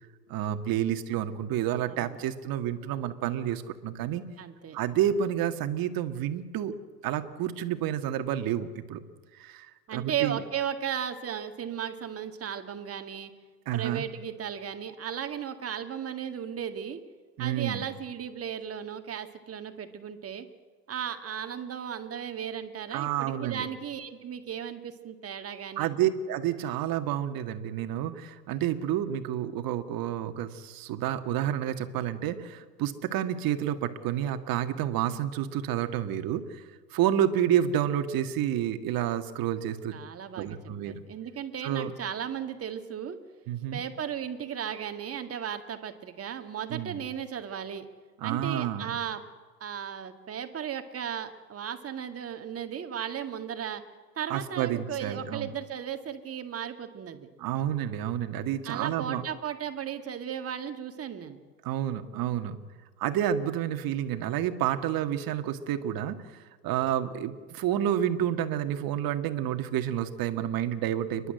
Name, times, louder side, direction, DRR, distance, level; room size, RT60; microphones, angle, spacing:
voice 1, 0.3-4.2 4.7-6.7 7.0-9.0 9.3-10.4 13.7-14.0 17.4-17.9 22.9-23.7 25.8-40.0 40.4-41.0 41.6-41.9 43.5-43.8 46.7-47.0 48.2-49.0 54.3-55.5 57.4-59.2 61.6-62.6 63.0-71.3, right 10 dB, 45° right, 8 dB, 1.9 m, -29 dB
voice 2, 1.8-2.2 4.4-4.8 9.9-13.3 13.7-17.0 17.4-20.5 20.9-25.9 39.9-40.6 40.9-43.2 43.7-47.9 48.2-49.2 49.6-53.8 54.2-57.3 58.7-61.4, right 8 dB, 30° right, 7 dB, 1.9 m, -35 dB
30.0 x 11.5 x 7.8 m, 1.5 s
hypercardioid pair, 100°, 50 cm